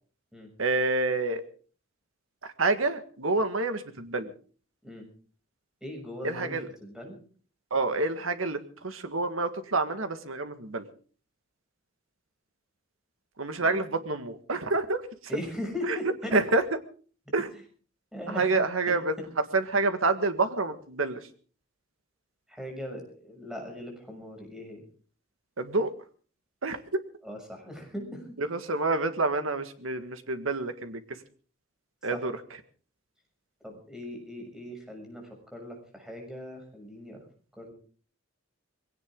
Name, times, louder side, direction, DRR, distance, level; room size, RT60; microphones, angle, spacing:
voice 1, 0.6-1.4 2.6-4.3 6.2-6.7 7.7-10.8 13.4-15.0 16.3-16.6 17.3-17.5 18.3-19.1 19.5-21.2 25.6-25.9 26.6-27.0 28.4-31.0 32.0-32.3, right 3 dB, 85° right, 9 dB, 1.8 m, -28 dB
voice 2, 5.8-7.2 13.6-14.0 15.3-16.4 18.1-18.5 18.9-19.0 22.5-24.8 27.2-28.2 32.1-32.3 33.6-37.2 37.6-37.7, left 1 dB, 5° right, 2 dB, 6.7 m, -39 dB
22.0 x 17.5 x 3.8 m, 0.42 s
head